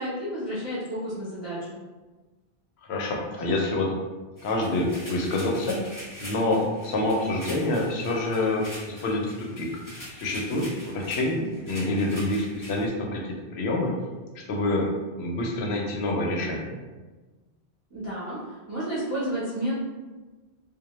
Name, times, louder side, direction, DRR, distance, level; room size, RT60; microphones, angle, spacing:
voice 1, 0.0-1.8 17.9-19.7, right 1 dB, 15° right, -10 dB, 0.7 m, -31 dB
voice 2, 2.9-3.9 4.4-5.8 6.2-9.7 10.1-13.9 14.4-14.9 15.1-16.7, left 2 dB, 80° left, 0 dB, 0.8 m, -27 dB
sound 1, 4.4-12.9, equal, 20° left, 0.6 m, -43 dB
2.1 x 2.0 x 3.0 m, 1.3 s
omnidirectional pair, 1.1 m